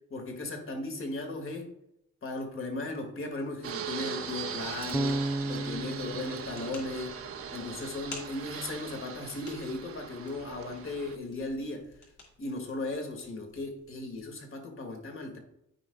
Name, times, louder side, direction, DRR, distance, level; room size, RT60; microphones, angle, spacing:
voice 1, 0.1-1.7 2.2-7.2 7.5-11.9 12.4-15.4, left 2 dB, 45° left, 3 dB, 2.0 m, -37 dB
Fixed-wing aircraft airplane, 3.6-11.2, right 7 dB, 50° right, 0.9 m, -40 dB
sound 1, 4.5-14.3, left 3 dB, 70° left, 2.7 m, -52 dB
Bass guitar, 4.9-8.0, right 2 dB, 5° right, 0.3 m, -35 dB
14.0 x 5.2 x 2.3 m, 0.78 s
cardioid pair, 90°, 30 cm